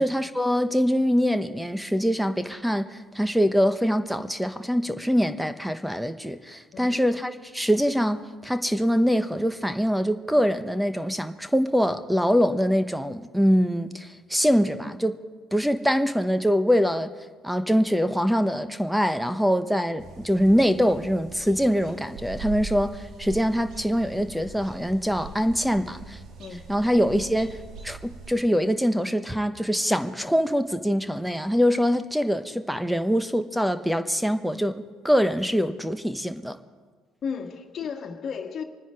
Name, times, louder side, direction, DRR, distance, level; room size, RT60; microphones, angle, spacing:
voice 1, 0.0-15.2 15.5-17.1 17.4-26.2 26.7-27.6 27.8-36.6, equal, ahead, 1.1 m, -24 dB
voice 2, 6.7-7.1 26.4-26.7 37.2-38.6, left 6 dB, 45° left, 1.7 m, -34 dB
sound 1, 20.0-28.3, right 4 dB, 55° right, 2.0 m, -41 dB
25.0 x 9.9 x 4.9 m
hypercardioid pair, 60°, 0 cm